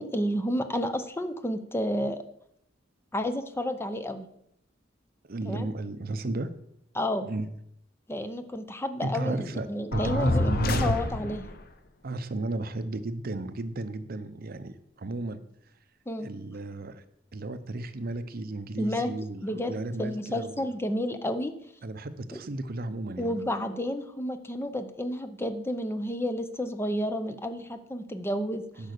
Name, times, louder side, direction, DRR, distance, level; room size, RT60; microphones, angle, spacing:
voice 1, 0.0-2.2 3.1-4.3 5.4-5.7 6.9-7.3 8.1-11.4 16.1-16.3 18.8-19.1 19.4-21.5 23.2-28.6, equal, 15° left, 9 dB, 0.6 m, -31 dB
voice 2, 5.3-6.5 7.2-7.5 9.0-11.0 12.0-15.4 16.2-17.0 17.3-20.7 21.8-23.4 28.8-28.9, right 2 dB, 55° right, 12 dB, 0.7 m, -34 dB
sound 1, 9.9-11.6, left 2 dB, 55° left, 0.8 m, -27 dB
10.5 x 5.5 x 6.6 m, 0.76 s
head